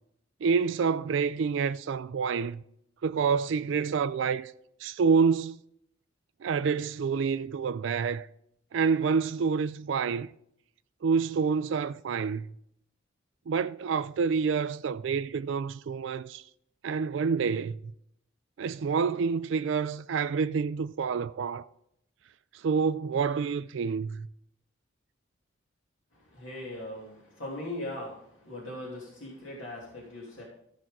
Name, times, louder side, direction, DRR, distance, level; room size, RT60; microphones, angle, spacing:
voice 1, 0.4-2.6 3.0-4.5 4.8-5.6 6.4-8.3 8.7-10.3 11.0-12.5 13.5-16.4 16.8-17.8 18.6-21.7 22.5-24.3, right 5 dB, 65° right, 0.3 m, -28 dB
voice 2, 26.3-28.2 28.4-30.4, left 1 dB, 80° left, 2.7 m, -39 dB
14.5 x 6.0 x 3.7 m
head